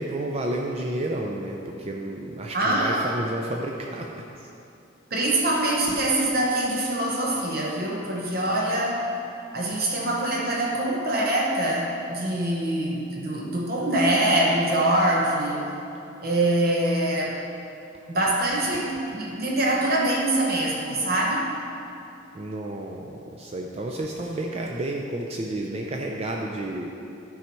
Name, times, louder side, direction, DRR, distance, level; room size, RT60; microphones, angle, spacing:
voice 1, 0.0-4.1 9.7-9.8 22.3-26.9, right 1 dB, 30° right, 0 dB, 0.4 m, -31 dB
voice 2, 2.5-3.3 5.1-9.1 9.5-15.7 16.2-17.5 18.1-21.5, right 1 dB, 50° right, -2 dB, 1.0 m, -24 dB
11.5 x 5.6 x 4.6 m, 2.8 s
head